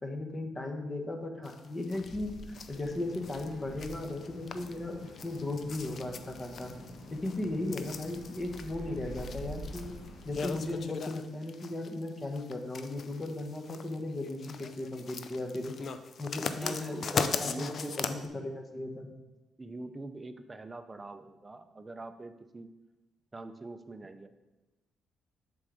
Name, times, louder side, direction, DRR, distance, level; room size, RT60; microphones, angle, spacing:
voice 1, 0.0-2.3 2.7-6.7 7.1-10.0 10.2-15.7 16.2-19.1, left 2 dB, 25° left, 3 dB, 1.1 m, -36 dB
sound 1, 1.5-18.3, left 5 dB, 55° left, 0.5 m, -40 dB
sound 2, 1.8-10.8, left 1 dB, 90° left, 1.8 m, -47 dB
voice 2, 16.6-18.2 19.6-22.7 23.3-24.3, right 2 dB, 20° right, 9 dB, 0.5 m, -44 dB
7.2 x 3.9 x 4.9 m, 1.1 s
cardioid pair, 90°, 0 cm